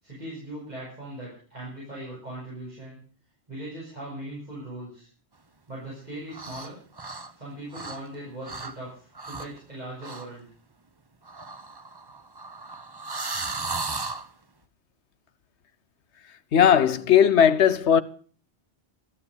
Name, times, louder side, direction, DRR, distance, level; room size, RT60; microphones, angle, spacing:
voice 1, 0.0-3.0 3.5-5.1 5.7-6.8 7.4-10.5, right 1 dB, 40° right, 7.2 m, -39 dB
sound 1, 6.3-6.7 7.0-8.2 8.4-8.7 9.2-9.6 10.0-10.3 11.3-14.3, right 3 dB, 25° right, 0.8 m, -35 dB
voice 2, 16.5-18.0, left 8 dB, 85° left, 1.2 m, -18 dB
13.5 x 9.7 x 8.1 m
omnidirectional pair, 1.1 m